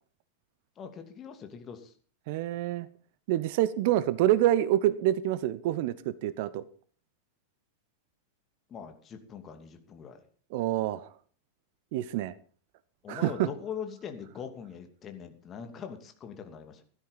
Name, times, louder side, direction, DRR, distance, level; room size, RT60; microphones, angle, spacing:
voice 1, 0.8-1.9 8.7-10.3 13.0-16.8, left 7 dB, 25° left, 6 dB, 2.7 m, -42 dB
voice 2, 2.3-2.9 3.3-6.6 10.5-11.1 11.9-12.3 13.1-13.5, right 13 dB, 50° right, 17 dB, 0.9 m, -27 dB
16.5 x 12.5 x 5.4 m, 0.43 s
figure-of-eight pair, 90°, 0 cm